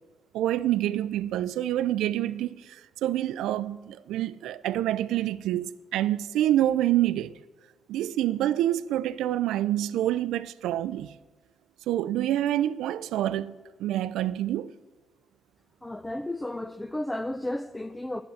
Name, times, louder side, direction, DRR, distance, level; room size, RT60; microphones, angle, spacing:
voice 1, 0.3-7.3 7.9-11.1 11.9-14.7, right 13 dB, 85° right, 0.4 m, -27 dB
voice 2, 15.8-18.2, left 1 dB, 10° left, 0.4 m, -33 dB
8.5 x 7.7 x 9.0 m
cardioid pair, 90°, 0 cm